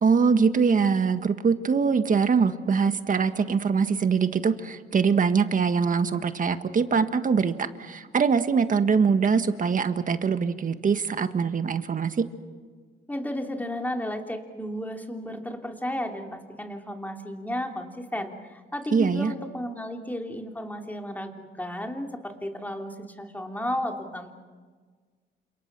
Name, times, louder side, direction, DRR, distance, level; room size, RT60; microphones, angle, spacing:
voice 1, 0.0-12.2 18.9-19.3, right 5 dB, 40° right, 9 dB, 1.7 m, -23 dB
voice 2, 13.1-24.3, left 1 dB, 10° left, 3 dB, 3.1 m, -33 dB
30.0 x 27.5 x 6.2 m, 1.5 s
cardioid pair, 90°, 20 cm